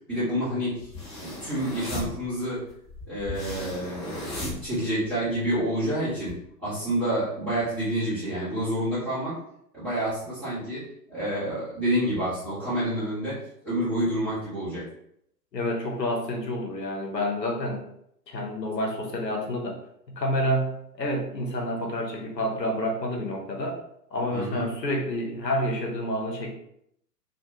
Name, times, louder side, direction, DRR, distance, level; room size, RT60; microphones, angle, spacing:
voice 1, 0.1-0.9 1.2-2.6 3.1-6.3 6.6-9.3 9.7-10.8 11.1-14.8 24.3-24.7, right 1 dB, 5° right, -17 dB, 0.4 m, -28 dB
sound 1, 0.8-5.3 5.7-6.3, left 2 dB, 20° left, 0.7 m, -37 dB
voice 2, 15.5-17.8 18.3-19.8 20.1-23.8 24.1-26.5, equal, 80° left, 1 dB, 0.8 m, -29 dB
2.4 x 2.2 x 2.8 m, 0.73 s
figure-of-eight pair, 115°, 49 cm